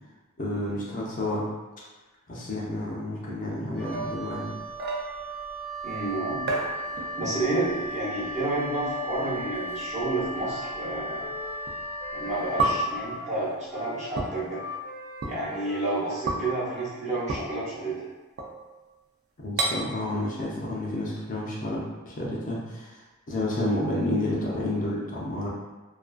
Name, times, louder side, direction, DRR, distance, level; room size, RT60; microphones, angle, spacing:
voice 1, 0.4-1.5 2.3-4.5 19.4-21.8 22.1-23.0 23.3-25.5, left 1 dB, 40° left, -5 dB, 0.5 m, -30 dB
Wind instrument woodwind instrument, 3.7-12.9, right 1 dB, 70° right, 0.8 m, -36 dB
sound 1, 3.9-5.4 6.5-7.4 7.7-8.1 9.0-9.1 10.0-10.1 11.7-11.8 12.6-13.1 14.1-14.3 15.2-15.4 16.3-16.5 17.3-17.4 18.4-18.8 19.6-19.7, right 2 dB, 50° right, 0.3 m, -30 dB
voice 2, 5.8-6.5 7.2-11.3 12.1-14.6 15.2-18.0, right 2 dB, 35° right, -9 dB, 0.8 m, -30 dB
Wind instrument woodwind instrument 2, 10.4-17.0, left 2 dB, 80° left, 0.8 m, -43 dB
2.4 x 2.3 x 2.2 m, 1.2 s
head